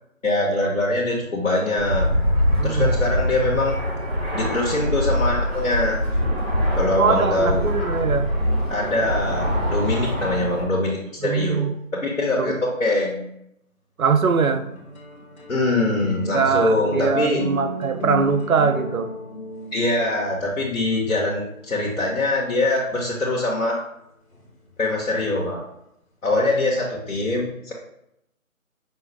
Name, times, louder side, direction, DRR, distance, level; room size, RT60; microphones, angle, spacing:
voice 1, 0.2-2.1 2.6-3.7 4.3-6.0 6.7-7.7 8.7-11.7 12.0-13.3 15.5-17.4 19.7-23.8 24.8-25.6 26.2-27.7, left 2 dB, 65° left, -4 dB, 1.1 m, -23 dB
Fixed-wing aircraft airplane, 1.8-10.6, equal, 45° right, 1.7 m, -23 dB
voice 2, 2.6-2.9 7.0-8.3 11.2-11.8 12.4-12.6 14.0-14.6 16.3-19.1, right 5 dB, 75° right, 8 dB, 0.6 m, -22 dB
sound 1, 14.4-23.4 24.3-25.3, left 1 dB, 80° left, 1.3 m, -35 dB
5.4 x 2.0 x 4.6 m, 0.79 s
figure-of-eight pair, 175°, 42 cm